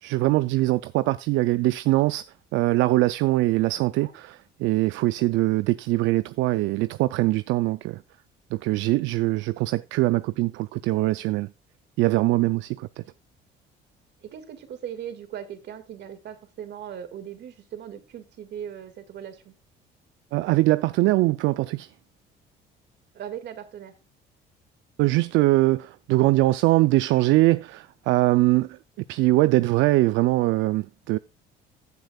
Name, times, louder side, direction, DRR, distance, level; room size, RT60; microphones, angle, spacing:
voice 1, 0.0-2.2 2.5-8.0 8.5-11.5 12.0-13.0 20.3-21.9 25.0-28.7 29.1-31.2, right 18 dB, 80° right, 0.4 m, -22 dB
voice 2, 3.7-4.1 13.0-13.1 14.2-19.5 23.1-23.9, right 9 dB, 60° right, 2.0 m, -39 dB
15.5 x 7.9 x 2.3 m
cardioid pair, 95°, 20 cm